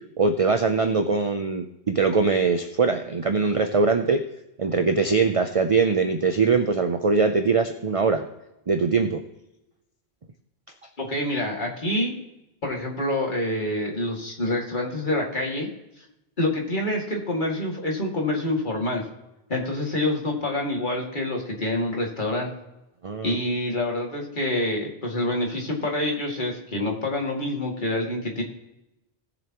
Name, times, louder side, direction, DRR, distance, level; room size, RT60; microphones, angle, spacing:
voice 1, 0.2-4.2 4.6-8.2 8.7-9.2 23.0-23.4, right 4 dB, 40° right, 7 dB, 0.7 m, -22 dB
voice 2, 11.0-12.1 12.6-15.7 16.4-19.0 19.5-22.5 23.2-28.4, left 1 dB, 50° left, -1 dB, 2.6 m, -27 dB
19.0 x 7.0 x 3.0 m, 0.91 s
omnidirectional pair, 1.1 m